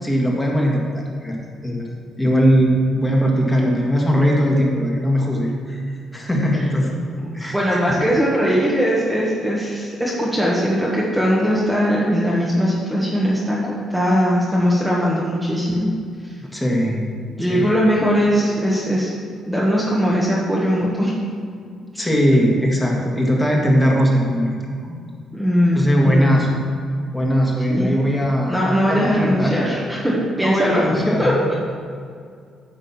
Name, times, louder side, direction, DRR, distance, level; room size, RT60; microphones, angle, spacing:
voice 1, 0.0-1.4 1.6-1.8 2.2-5.8 6.1-6.9 7.3-7.8 16.4-17.0 17.4-17.7 22.0-24.5 24.8-25.0 25.8-26.5 27.1-28.6 28.9-29.8 30.4-31.3, equal, 10° left, -2 dB, 1.9 m, -19 dB
voice 2, 7.2-15.9 16.2-16.3 17.3-19.1 19.4-21.1 25.3-26.3 27.7-27.9 28.5-30.8 31.2-31.6, equal, 5° right, -6 dB, 1.4 m, -20 dB
10.0 x 3.6 x 7.1 m, 2.2 s
cardioid pair, 90°, 0 cm